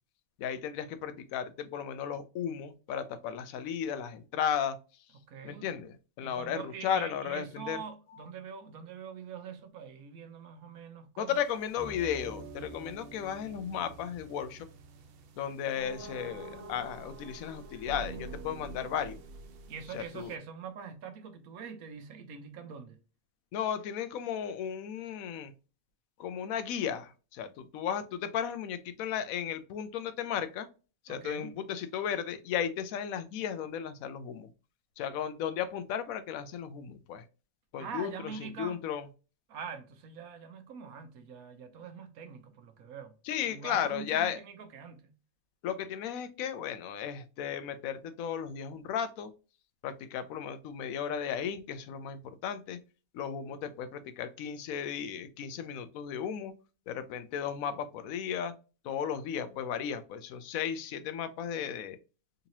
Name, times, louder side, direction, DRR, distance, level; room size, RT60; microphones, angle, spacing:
voice 1, 0.4-4.8 5.4-7.8 11.2-14.7 15.4-19.2 19.9-20.3 23.5-25.5 26.2-30.7 31.1-34.5 35.0-37.2 37.7-38.1 38.6-39.0 43.3-44.4 45.6-49.3 49.8-52.8 53.1-56.5 56.9-58.5 58.8-62.0, left 8 dB, 75° left, 1.0 m, -35 dB
voice 2, 5.1-5.7 6.2-11.4 19.7-23.0 31.1-31.5 37.8-38.8 39.5-43.1 43.5-45.2, right 6 dB, 90° right, 1.2 m, -44 dB
sound 1, 11.3-20.4, right 3 dB, 65° right, 0.6 m, -46 dB
3.9 x 2.9 x 2.6 m
omnidirectional pair, 1.5 m